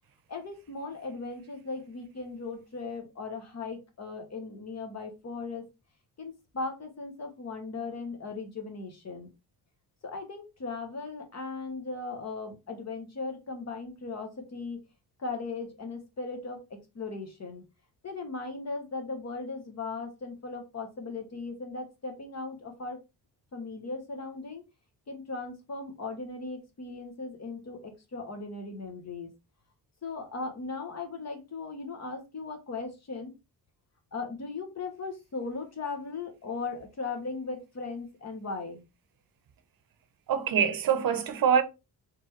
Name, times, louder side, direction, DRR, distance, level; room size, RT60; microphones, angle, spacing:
voice 1, 0.3-5.6 6.2-9.3 10.0-14.8 15.2-17.6 18.0-23.0 23.5-24.6 25.1-29.3 30.0-33.3 34.1-38.8, left 3 dB, 40° left, 1.1 m, -38 dB
voice 2, 40.3-41.6, right 8 dB, 60° right, 0.7 m, -24 dB
4.0 x 3.3 x 3.1 m
wide cardioid pair, 145°, 40 cm